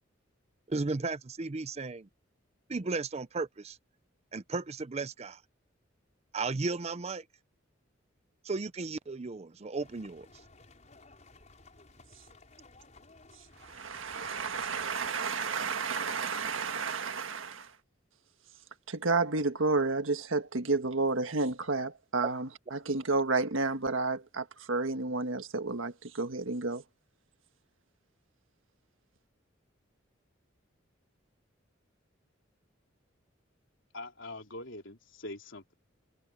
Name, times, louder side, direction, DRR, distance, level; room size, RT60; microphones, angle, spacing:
voice 1, 0.7-2.1 2.7-3.8 4.3-5.4 6.3-7.2 8.4-10.3, right 3 dB, 35° right, 0.5 m, -35 dB
sound 1, 9.8-15.1, left 3 dB, 35° left, 5.7 m, -57 dB
voice 2, 13.6-17.7 18.9-26.8, right 3 dB, 90° right, 1.6 m, -31 dB
voice 3, 33.9-35.7, left 2 dB, 70° left, 3.6 m, -43 dB
head